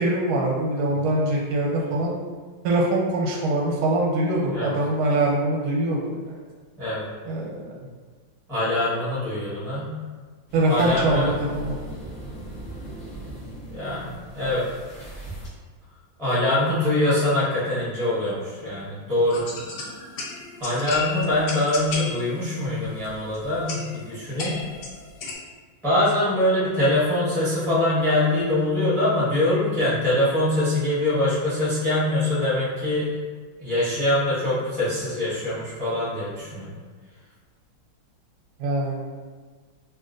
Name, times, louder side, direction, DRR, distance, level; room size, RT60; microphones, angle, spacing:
voice 1, 0.0-2.2 2.6-6.4 7.2-7.8 10.5-11.8 38.6-39.0, right 1 dB, 85° right, -2 dB, 1.5 m, -23 dB
voice 2, 8.5-9.9 10.7-11.3 13.7-14.6 16.2-19.4 20.6-24.6 25.8-33.1 33.6-36.7, left 1 dB, 5° left, -10 dB, 0.5 m, -23 dB
sound 1, 10.5-15.5, right 1 dB, 60° left, 0.6 m, -38 dB
sound 2, 19.3-25.3, left 3 dB, 80° left, 1.3 m, -35 dB
3.1 x 2.7 x 2.4 m, 1.5 s
omnidirectional pair, 2.3 m